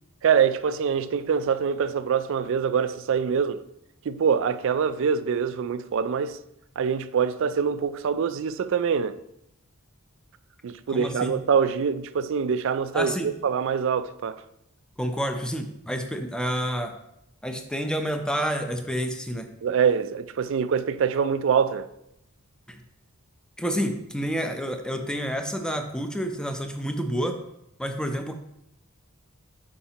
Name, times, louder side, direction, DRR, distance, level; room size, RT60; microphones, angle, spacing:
voice 1, 0.2-3.6 4.1-6.4 6.8-9.2 10.6-14.4 19.6-21.9, right 6 dB, 60° right, 0.3 m, -24 dB
voice 2, 10.9-11.3 12.9-13.3 15.0-16.9 17.4-19.5 23.6-27.4 27.8-28.3, equal, 5° left, 0.5 m, -29 dB
8.4 x 5.8 x 2.9 m
head